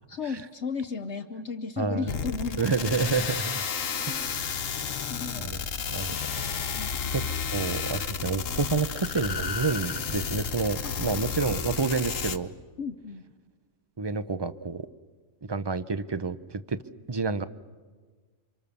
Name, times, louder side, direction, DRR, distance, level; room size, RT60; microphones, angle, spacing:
voice 1, 0.1-2.9 4.1-4.3 5.1-5.5 6.1-6.2 6.8-7.3 10.8-10.9 12.8-13.2, left 5 dB, 65° left, 6 dB, 1.2 m, -35 dB
voice 2, 1.8-2.1 2.6-3.6 4.1-4.5 5.4-5.6 5.9-6.1 7.1-12.5 14.0-14.9 15.4-16.8 17.1-17.4, right 4 dB, 25° right, 13 dB, 0.6 m, -29 dB
sound 1, 2.1-12.4, left 6 dB, 85° left, 1.4 m, -32 dB
29.0 x 25.5 x 7.0 m, 1.4 s
omnidirectional pair, 1.3 m